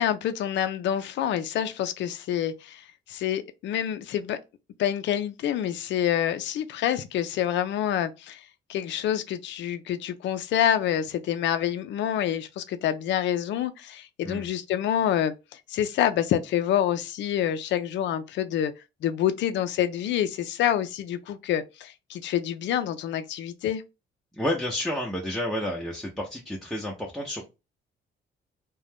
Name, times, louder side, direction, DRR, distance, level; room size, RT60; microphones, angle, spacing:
voice 1, 0.0-4.4 4.8-8.4 8.7-15.3 15.7-18.7 19.0-23.8, left 10 dB, 65° left, 0.4 m, -27 dB
voice 2, 24.3-27.4, left 1 dB, ahead, 0.7 m, -30 dB
2.4 x 2.2 x 3.4 m
cardioid pair, 90°, 20 cm